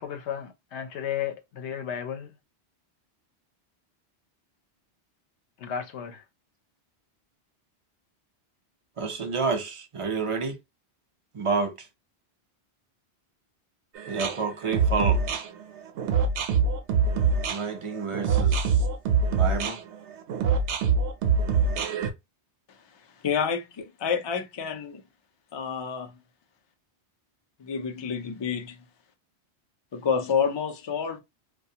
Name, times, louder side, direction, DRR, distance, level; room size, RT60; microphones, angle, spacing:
voice 1, 0.0-2.3 5.6-6.2, left 8 dB, 80° left, 0.9 m, -34 dB
voice 2, 9.0-10.6 11.3-11.7 14.1-15.2 17.5-18.8 19.3-19.8, right 4 dB, 40° right, 0.5 m, -29 dB
sound 1, 14.0-22.1, right 5 dB, 85° right, 0.9 m, -24 dB
voice 3, 23.2-25.0 25.5-26.2 27.6-28.8 29.9-31.2, left 6 dB, 45° left, 0.3 m, -28 dB
2.3 x 2.2 x 2.7 m
omnidirectional pair, 1.1 m